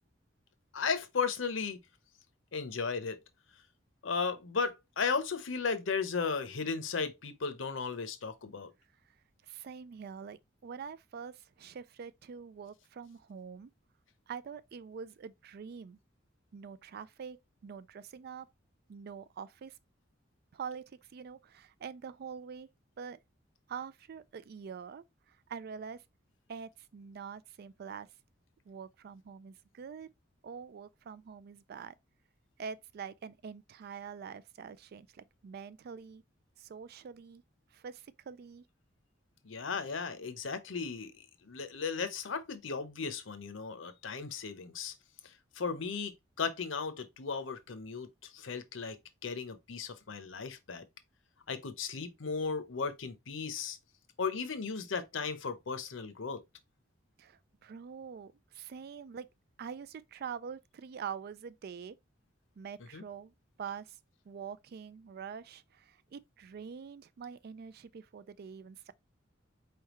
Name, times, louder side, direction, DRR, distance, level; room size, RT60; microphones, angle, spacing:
voice 1, 0.7-1.8 2.5-3.2 4.0-8.7 39.4-41.1 41.4-44.9 45.2-50.8 51.5-53.8 54.2-56.4 62.9-63.0, left 5 dB, 75° left, 0.8 m, -35 dB
voice 2, 9.5-13.7 14.3-16.0 16.5-17.4 17.6-18.5 18.9-19.8 20.5-22.7 23.0-23.2 23.7-26.0 26.5-28.1 28.7-30.1 30.4-31.9 32.6-36.2 36.6-37.4 37.7-38.6 57.2-59.3 59.6-62.0 62.6-63.3 63.6-64.0 64.3-68.9, right 6 dB, 50° right, 0.3 m, -45 dB
4.5 x 3.4 x 3.0 m
head